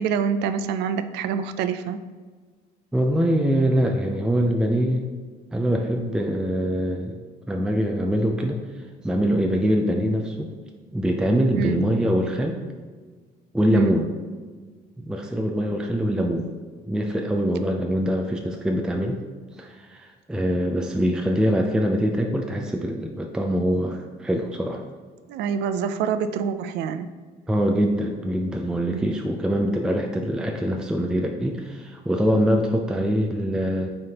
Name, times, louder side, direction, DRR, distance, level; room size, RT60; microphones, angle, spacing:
voice 1, 0.0-2.0 11.5-11.8 13.7-13.9 25.3-27.1 28.9-29.2, right 7 dB, 85° right, 11 dB, 0.4 m, -26 dB
voice 2, 2.9-5.1 5.5-7.2 7.5-8.6 9.0-10.5 10.9-12.6 13.5-14.1 15.0-16.5 16.8-19.2 19.6-24.8 27.5-33.9, equal, 5° right, 2 dB, 0.5 m, -23 dB
9.4 x 3.5 x 2.9 m, 1.5 s
cardioid pair, 110°, 17 cm